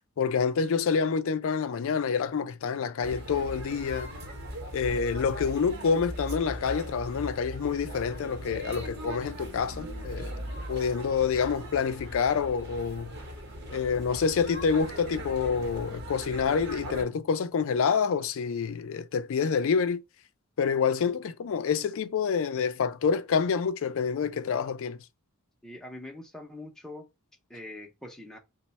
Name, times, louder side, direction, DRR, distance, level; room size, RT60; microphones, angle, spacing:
voice 1, 0.2-4.1 4.7-10.3 10.7-13.1 13.7-20.0 20.6-25.0, left 6 dB, 60° left, 0.4 m, -27 dB
sound 1, 3.0-17.1, equal, 50° right, 0.9 m, -39 dB
voice 2, 25.6-27.1 27.5-28.4, left 1 dB, ahead, 0.5 m, -43 dB
3.0 x 2.1 x 4.1 m
head